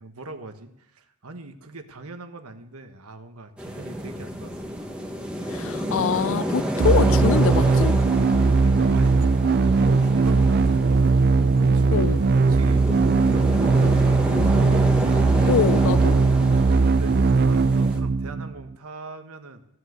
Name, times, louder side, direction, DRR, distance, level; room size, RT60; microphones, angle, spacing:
voice 1, 0.0-4.5 5.4-6.0 8.6-9.3 9.6-14.8 16.8-19.6, right 2 dB, 75° right, 1.4 m, -41 dB
sound 1, 3.6-18.0, equal, 5° right, 1.6 m, -30 dB
voice 2, 5.5-8.0 11.9-12.2 15.5-16.2, left 6 dB, 60° left, 0.4 m, -24 dB
sound 2, 6.8-18.7, right 4 dB, 45° right, 0.4 m, -19 dB
15.5 x 8.0 x 8.1 m
head